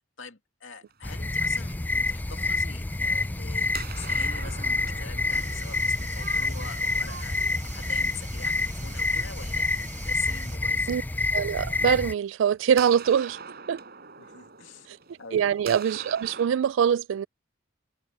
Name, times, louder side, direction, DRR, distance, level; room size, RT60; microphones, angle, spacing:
voice 1, 0.0-3.7 4.0-9.7 9.9-11.0 14.2-14.9 15.2-15.4, left 6 dB, 85° left, 2.3 m, -44 dB
sound 1, 0.9-2.7 3.1-10.3 11.8-11.9 12.8-16.5, right 6 dB, 55° right, 5.3 m, -44 dB
sound 2, 1.0-12.1, left 2 dB, 10° left, 0.4 m, -28 dB
sound 3, 5.3-10.6, right 7 dB, 40° right, 0.8 m, -46 dB
voice 2, 11.3-13.4 13.7-13.8 14.9-15.0 15.3-17.3, right 8 dB, 75° right, 0.3 m, -23 dB
head